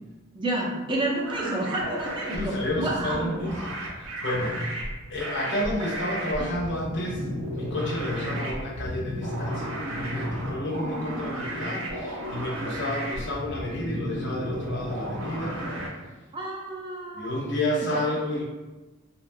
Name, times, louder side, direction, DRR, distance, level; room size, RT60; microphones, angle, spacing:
voice 1, 0.3-3.3 5.4-5.5 6.4-6.5 16.3-17.3 17.8-18.0, right 1 dB, 25° right, -2 dB, 0.5 m, -30 dB
sound 1, 1.2-15.9, right 1 dB, 80° right, 0.5 m, -33 dB
voice 2, 2.3-4.7 5.1-7.3 7.5-15.6 17.1-18.4, left 1 dB, 60° left, -2 dB, 0.6 m, -30 dB
2.8 x 2.2 x 2.5 m, 1.2 s
head